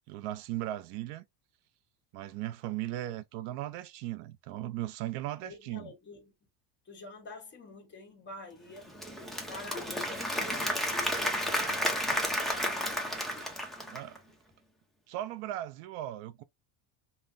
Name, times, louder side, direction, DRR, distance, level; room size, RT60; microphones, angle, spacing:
voice 1, 0.1-1.3 2.1-5.9 13.4-13.6 13.9-14.2 15.1-16.4, right 14 dB, 65° right, 0.6 m, -37 dB
voice 2, 5.4-6.3 6.8-9.0 9.5-13.1, left 2 dB, 25° left, 1.4 m, -48 dB
Applause / Crowd, 8.8-14.2, equal, ahead, 0.6 m, -32 dB
5.4 x 2.2 x 2.5 m
cardioid pair, 145°, 46 cm